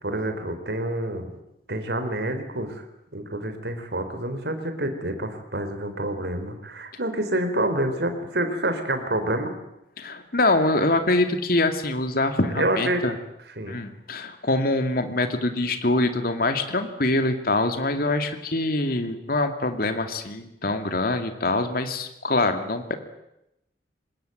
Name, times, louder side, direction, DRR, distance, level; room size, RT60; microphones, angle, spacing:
voice 1, 0.0-1.3 1.7-2.8 3.1-9.5 12.6-13.0 13.6-13.8, right 1 dB, 65° right, 8 dB, 3.9 m, -27 dB
voice 2, 10.0-13.1 13.7-22.9, left 2 dB, 55° left, 8 dB, 2.4 m, -24 dB
25.5 x 20.5 x 9.1 m, 0.84 s
head